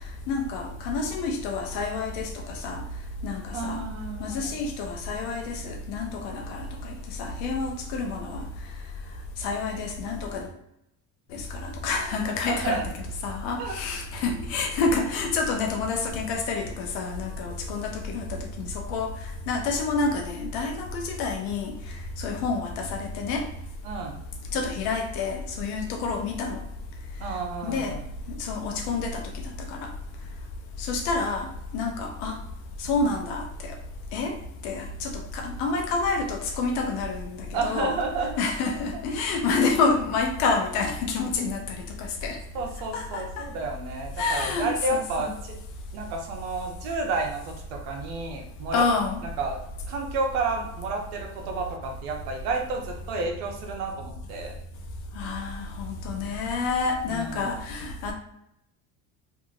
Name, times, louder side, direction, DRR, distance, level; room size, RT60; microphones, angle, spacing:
voice 1, 0.3-2.8 3.2-3.8 4.2-8.5 9.4-10.5 11.3-12.9 13.2-19.1 19.5-21.7 22.2-23.5 24.5-26.6 27.6-27.9 28.4-29.2 29.7-29.9 30.8-31.5 31.7-32.4 32.8-33.7 34.1-34.3 34.6-38.0 38.4-42.4 42.9-43.4 44.2-45.3 48.7-49.2 55.1-58.1, left 4 dB, 75° left, 3 dB, 0.8 m, -28 dB
voice 2, 3.5-4.5 12.5-12.8 13.6-13.7 23.8-24.2 27.2-28.0 37.5-38.4 39.1-39.3 42.5-45.6 45.9-48.8 49.4-49.6 49.9-54.5 57.1-57.5, right 3 dB, 85° right, 2 dB, 0.8 m, -31 dB
2.8 x 2.6 x 2.4 m, 0.80 s
supercardioid pair, 75°, 41 cm